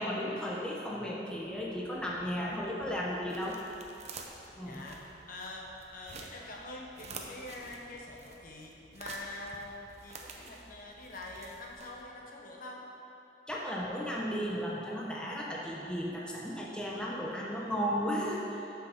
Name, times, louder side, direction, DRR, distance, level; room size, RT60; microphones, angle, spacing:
voice 1, 0.0-3.6 4.6-4.9 13.5-18.7, equal, 5° left, -4 dB, 0.9 m, -35 dB
sound 1, 1.3-12.3, right 3 dB, 40° right, 0.8 m, -50 dB
voice 2, 4.6-12.9, left 2 dB, 55° left, -1 dB, 1.2 m, -45 dB
8.3 x 6.2 x 6.5 m, 2.9 s
head